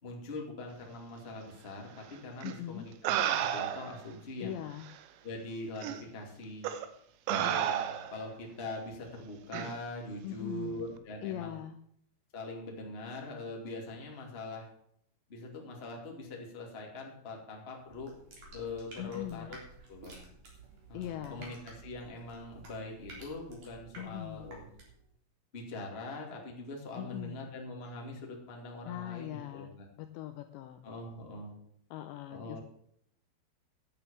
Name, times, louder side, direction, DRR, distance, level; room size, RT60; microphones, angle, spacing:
voice 1, 0.0-4.6 5.2-6.7 7.3-11.6 12.3-14.7 15.3-18.1 18.5-19.6 19.9-20.2 20.9-24.7 25.5-29.9 30.8-31.6 32.3-32.6, left 2 dB, 25° left, 0 dB, 1.3 m, -42 dB
voice 2, 2.4-2.9 4.4-4.9 10.2-10.8 11.2-11.8 19.0-19.5 20.9-21.5 24.0-24.4 27.0-27.4 28.9-30.8 31.9-32.6, left 12 dB, 85° left, 8 dB, 2.6 m, -41 dB
sound 1, 2.4-2.5 3.0-4.0 4.9-5.0 5.8-6.0 6.6-6.9 7.3-8.2 9.5-9.7, right 10 dB, 75° right, 2.9 m, -31 dB
sound 2, 17.8-25.1, right 3 dB, 40° right, 4.2 m, -52 dB
11.0 x 9.0 x 7.1 m, 0.69 s
omnidirectional pair, 5.8 m